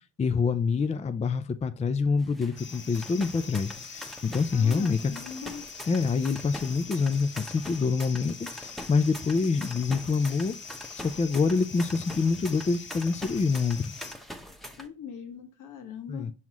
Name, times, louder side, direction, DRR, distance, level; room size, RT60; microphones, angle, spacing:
voice 1, 0.2-5.1 5.9-10.5 11.0-13.9 16.1-16.3, left 4 dB, 20° left, 0.5 m, -26 dB
sound 1, 2.2-14.9, equal, ahead, 1.0 m, -44 dB
sound 2, 2.6-14.1, left 6 dB, 40° left, 1.0 m, -44 dB
voice 2, 4.5-5.7 14.7-16.3, left 7 dB, 80° left, 1.4 m, -41 dB
6.1 x 5.6 x 3.0 m
cardioid pair, 90°, 30 cm